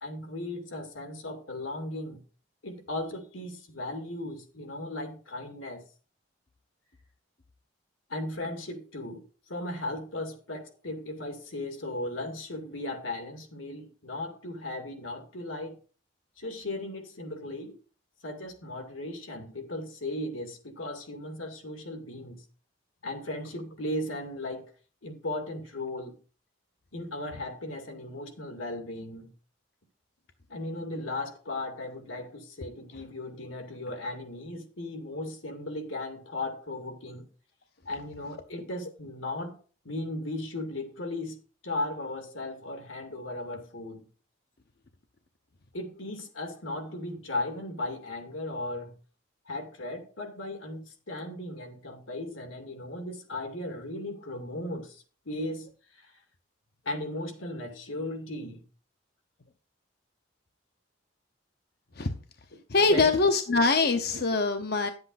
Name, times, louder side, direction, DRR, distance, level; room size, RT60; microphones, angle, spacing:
voice 1, 0.0-2.2 2.6-5.8 8.1-15.8 16.4-17.8 18.2-22.4 23.0-24.7 25.0-26.2 26.9-29.3 30.5-37.3 37.9-39.6 39.8-41.4 41.6-44.0 45.7-48.9 49.5-56.2 56.8-58.6 62.9-63.1 63.5-63.6 64.1-64.2, left 1 dB, 85° left, 2.4 m, -36 dB
voice 2, 62.7-64.9, left 3 dB, 50° left, 0.8 m, -23 dB
10.5 x 8.0 x 4.1 m
head